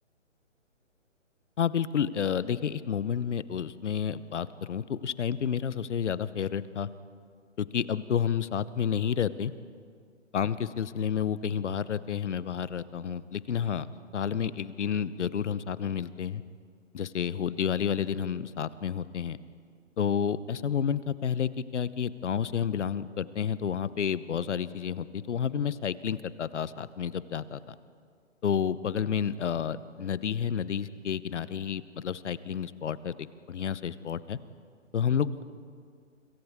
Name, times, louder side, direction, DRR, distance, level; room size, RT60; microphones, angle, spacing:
voice 1, 1.6-6.9 7.6-9.5 10.3-16.4 16.9-19.4 20.0-27.8 28.4-34.4 34.9-35.4, left 8 dB, 65° left, 16 dB, 0.9 m, -30 dB
29.0 x 25.5 x 3.6 m, 2.1 s
hypercardioid pair, 150°, 38 cm